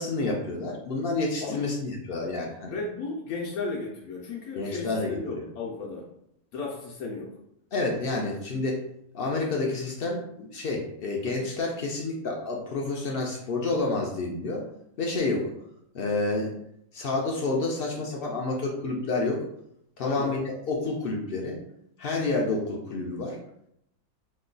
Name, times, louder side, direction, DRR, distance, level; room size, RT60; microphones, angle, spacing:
voice 1, 0.0-2.7 4.6-5.4 7.7-8.8 9.1-14.6 15.0-15.5 15.9-16.5 16.9-19.4 20.0-21.6 22.0-23.4, left 3 dB, 65° left, -1 dB, 0.5 m, -29 dB
voice 2, 2.7-6.1 6.5-7.4 20.0-20.4, left 3 dB, 85° left, -3 dB, 1.1 m, -34 dB
3.1 x 2.2 x 3.8 m, 0.75 s
omnidirectional pair, 1.5 m